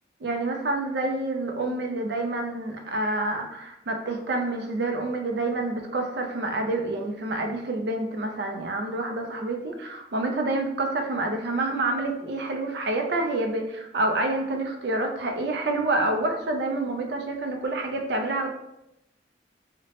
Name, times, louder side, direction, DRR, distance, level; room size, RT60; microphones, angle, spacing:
voice 1, 0.2-18.5, right 2 dB, 60° right, 3 dB, 0.4 m, -28 dB
2.9 x 2.1 x 2.8 m, 0.84 s
head